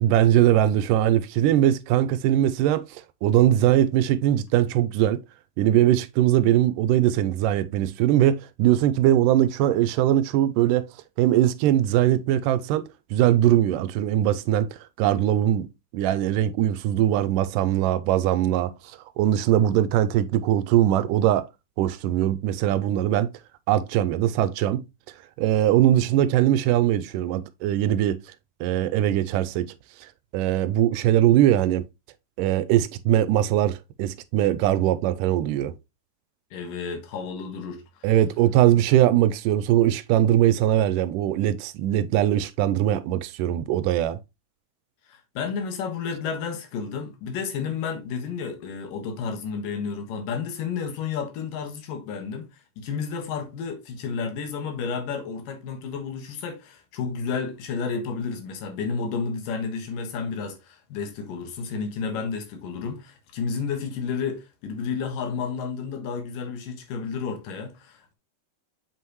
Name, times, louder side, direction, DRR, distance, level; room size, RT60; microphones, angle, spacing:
voice 1, 0.0-5.2 5.6-10.9 11.2-12.8 13.1-21.5 21.8-23.3 23.7-24.9 25.4-28.2 28.6-29.7 30.0-31.8 32.4-35.7 38.0-44.2, right 12 dB, 85° right, 2.1 m, -21 dB
voice 2, 36.5-38.1 45.1-68.1, left 5 dB, 85° left, 3.1 m, -31 dB
7.6 x 5.6 x 3.0 m
omnidirectional pair, 3.8 m